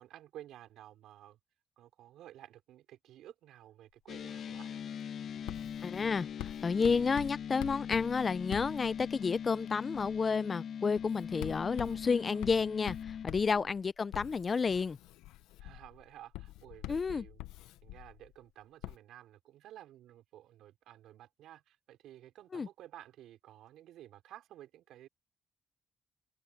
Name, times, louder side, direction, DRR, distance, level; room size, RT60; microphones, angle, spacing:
voice 1, 0.0-1.4 1.8-4.8 11.3-12.4 13.5-13.7 15.6-17.5 17.8-25.1, right 13 dB, 80° right, 5.4 m, -54 dB
sound 1, 4.1-13.3, left 8 dB, 65° left, 1.1 m, -41 dB
Writing, 5.5-9.4 9.9-10.3 11.0-18.3 18.8-19.0, left 17 dB, 90° left, 0.8 m, -46 dB
voice 2, 5.8-6.3 6.6-13.0 13.2-15.0 16.9-17.2 22.5-22.7, left 5 dB, 40° left, 0.5 m, -31 dB
open air
supercardioid pair, 65°, 0 cm